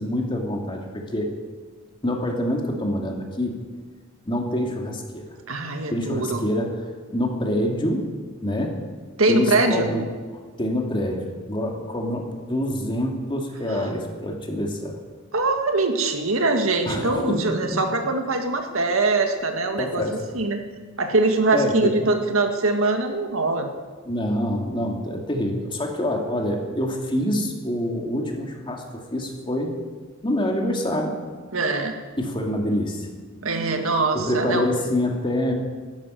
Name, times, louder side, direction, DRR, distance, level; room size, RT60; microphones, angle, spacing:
voice 1, 0.0-1.3 2.0-3.6 4.3-5.3 5.9-6.8 7.1-8.1 8.4-8.8 9.3-10.0 10.6-15.0 16.9-17.5 19.8-20.2 21.5-21.9 24.1-29.8 30.2-31.2 32.2-33.1 34.1-35.5, left 1 dB, 25° left, 2 dB, 2.5 m, -26 dB
voice 2, 5.5-6.4 9.2-9.9 13.7-14.0 15.3-20.1 20.3-20.6 21.0-23.7 31.5-32.0 33.4-34.7, right 2 dB, 75° right, 4 dB, 2.0 m, -22 dB
13.0 x 11.5 x 9.4 m, 1.5 s
head